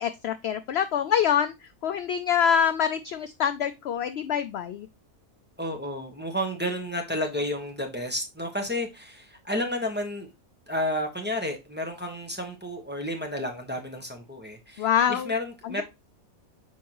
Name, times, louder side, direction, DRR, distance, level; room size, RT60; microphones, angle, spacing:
voice 1, 0.0-1.5 1.8-4.9 14.8-15.3, left 8 dB, 65° left, 11 dB, 0.6 m, -25 dB
voice 2, 5.6-10.3 10.7-15.8, left 1 dB, 10° right, 2 dB, 1.1 m, -31 dB
6.9 x 4.6 x 3.0 m, 0.23 s
omnidirectional pair, 1.4 m